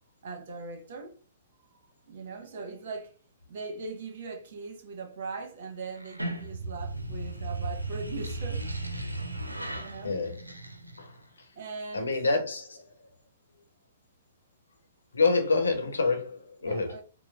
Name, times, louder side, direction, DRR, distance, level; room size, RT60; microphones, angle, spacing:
voice 1, 0.2-1.2 2.1-3.1 3.5-8.7 9.7-10.2 11.5-12.1 16.6-17.0, right 4 dB, 50° right, 1.3 m, -40 dB
rope and pulley, 5.9-11.3, right 2 dB, 85° right, 0.6 m, -36 dB
voice 2, 10.0-10.4 11.0-11.1 11.9-12.8 15.1-16.9, left 3 dB, 70° left, 1.0 m, -27 dB
4.7 x 2.1 x 3.4 m
figure-of-eight pair, 115°, 0 cm